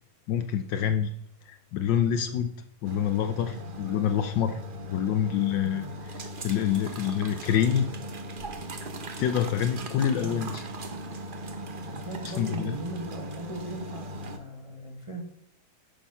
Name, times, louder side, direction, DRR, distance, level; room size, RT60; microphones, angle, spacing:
voice 1, 0.3-1.1 1.5-2.5 2.8-4.6 4.9-5.8 6.4-7.9 9.2-10.6 12.2-12.8, left 9 dB, 70° left, 10 dB, 1.2 m, -26 dB
sound 1, 2.8-14.4, right 1 dB, 50° right, 0.6 m, -39 dB
voice 2, 11.8-15.2, right 1 dB, 15° right, 0 dB, 1.5 m, -38 dB
10.0 x 6.3 x 5.6 m, 0.72 s
omnidirectional pair, 2.2 m